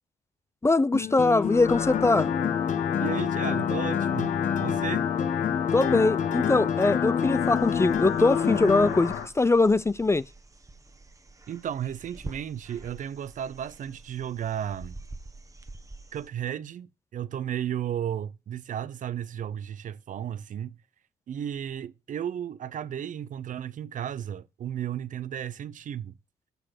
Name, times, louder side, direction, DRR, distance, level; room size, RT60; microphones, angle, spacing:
voice 1, 0.6-2.3 5.7-10.2, left 3 dB, 15° left, 0.4 m, -22 dB
sound 1, 0.9-8.9, left 7 dB, 50° left, 1.3 m, -29 dB
sound 2, 1.3-9.3, left 9 dB, 75° left, 1.9 m, -31 dB
voice 2, 3.0-5.1 11.5-15.0 16.1-20.8 21.3-26.2, right 9 dB, 55° right, 0.7 m, -34 dB
sound 3, 7.2-16.3, right 2 dB, 20° right, 1.3 m, -47 dB
6.8 x 6.8 x 5.8 m
supercardioid pair, 65°, 16 cm